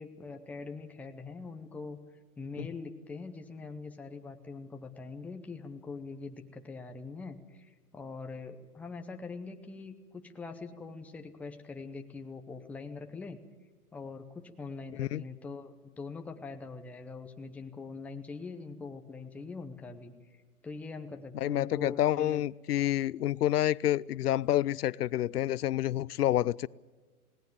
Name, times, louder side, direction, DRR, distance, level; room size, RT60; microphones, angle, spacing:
voice 1, 0.0-2.0 2.4-13.4 13.9-20.1 20.6-22.4, left 4 dB, 5° left, 0.7 m, -43 dB
voice 2, 14.9-15.2 21.3-26.7, left 13 dB, 85° left, 0.6 m, -28 dB
19.5 x 18.0 x 9.1 m
hypercardioid pair, 145°, 45 cm